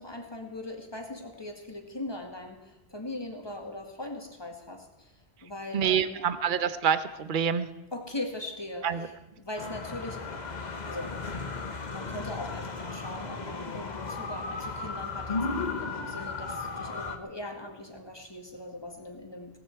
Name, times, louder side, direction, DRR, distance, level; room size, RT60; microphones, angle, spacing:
voice 1, 0.0-5.1 5.4-6.2 7.9-10.4 10.8-11.2 11.8-19.6, left 2 dB, 25° left, 3 dB, 2.2 m, -40 dB
voice 2, 5.7-7.7 8.8-9.1, right 8 dB, 55° right, 12 dB, 0.9 m, -27 dB
sound 1, 9.6-17.2, left 3 dB, 45° left, 1.3 m, -35 dB
18.0 x 14.5 x 4.6 m, 0.97 s
omnidirectional pair, 1.0 m